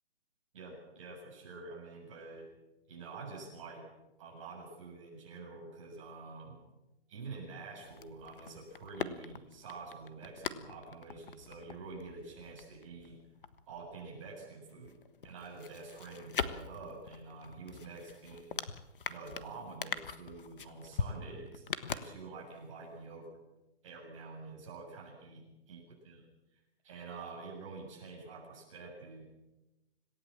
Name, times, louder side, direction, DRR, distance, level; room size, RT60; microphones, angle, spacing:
voice 1, 0.5-2.5 2.9-3.9 4.2-6.6 7.1-13.2 13.7-14.9 15.2-18.6 19.1-23.3 23.8-26.2 26.8-29.2, right 4 dB, 30° right, -2 dB, 7.1 m, -47 dB
sound 1, 7.8-14.4 14.7-22.7 22.9-23.0, left 6 dB, 55° left, 1.5 m, -42 dB
26.5 x 17.0 x 7.5 m, 1.0 s
hypercardioid pair, 175°, 32 cm